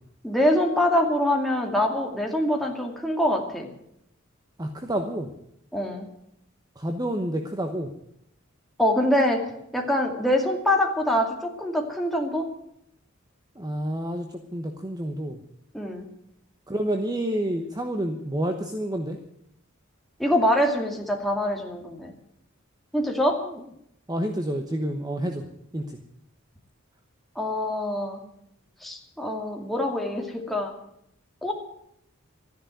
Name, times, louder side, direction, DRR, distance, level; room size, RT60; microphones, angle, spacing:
voice 1, 0.2-3.7 5.7-6.1 8.8-9.4 9.7-12.5 15.7-16.1 20.2-22.1 22.9-23.4 27.4-28.2 28.8-30.7 31.4-31.5, left 1 dB, ahead, 1 dB, 2.4 m, -24 dB
voice 2, 4.6-5.3 6.8-7.9 13.6-15.4 16.7-19.2 23.4-23.5 24.1-25.4 25.7-26.0, right 1 dB, 20° right, 5 dB, 1.1 m, -29 dB
13.5 x 10.5 x 9.2 m, 0.76 s
head